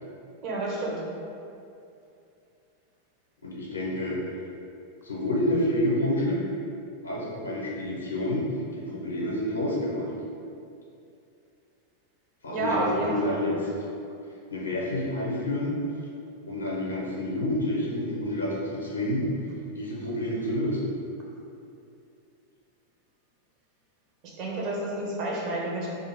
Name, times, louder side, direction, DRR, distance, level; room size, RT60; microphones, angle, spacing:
voice 1, 0.4-1.0 12.5-13.4 24.4-25.9, right 2 dB, 40° right, -3 dB, 0.5 m, -29 dB
voice 2, 3.4-4.2 5.0-6.4 7.0-8.5 8.8-10.1 12.4-13.7 14.5-15.8 16.5-19.3 19.8-20.9, left 1 dB, 75° left, -4 dB, 0.6 m, -28 dB
2.4 x 2.3 x 3.0 m, 2.6 s
figure-of-eight pair, 90°, 0 cm